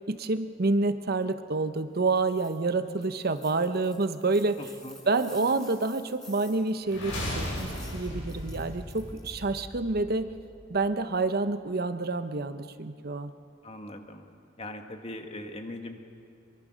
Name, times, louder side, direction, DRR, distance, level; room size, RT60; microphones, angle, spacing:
voice 1, 0.1-4.6 5.1-10.3 10.7-13.3, right 3 dB, 50° right, 10 dB, 0.9 m, -28 dB
sound 1, 2.0-2.6 2.9-9.6, left 1 dB, 5° left, 6.3 m, -51 dB
voice 2, 4.6-5.0 13.6-14.2 14.6-16.1, left 1 dB, 30° left, 5 dB, 1.6 m, -40 dB
sound 2, 6.8-10.8, left 1 dB, 85° left, 7.8 m, -37 dB
24.0 x 23.5 x 6.3 m, 2.4 s
head